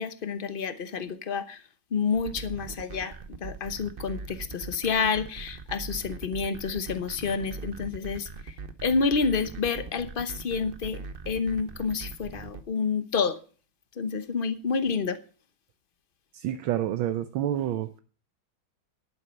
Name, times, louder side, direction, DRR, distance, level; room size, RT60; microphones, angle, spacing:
voice 1, 0.0-1.6 1.9-8.5 8.8-13.4 14.0-15.2, left 5 dB, 40° left, 11 dB, 0.8 m, -29 dB
sound 1, 2.1-12.6, right 4 dB, 50° right, 0.6 m, -40 dB
voice 2, 16.3-18.0, right 11 dB, 80° right, 10 dB, 1.6 m, -28 dB
11.0 x 9.4 x 5.7 m, 0.38 s
omnidirectional pair, 2.2 m